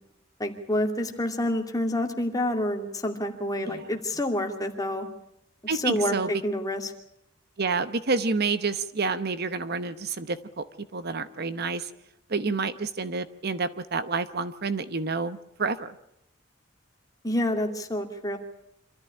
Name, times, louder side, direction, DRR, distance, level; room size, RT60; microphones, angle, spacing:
voice 1, 0.4-5.1 5.7-6.9 17.2-18.4, left 1 dB, 20° left, 4 dB, 2.5 m, -28 dB
voice 2, 5.7-6.3 7.6-10.6 10.9-11.9 12.3-15.9, right 4 dB, 55° right, 13 dB, 0.9 m, -29 dB
26.0 x 14.0 x 9.9 m, 0.81 s
head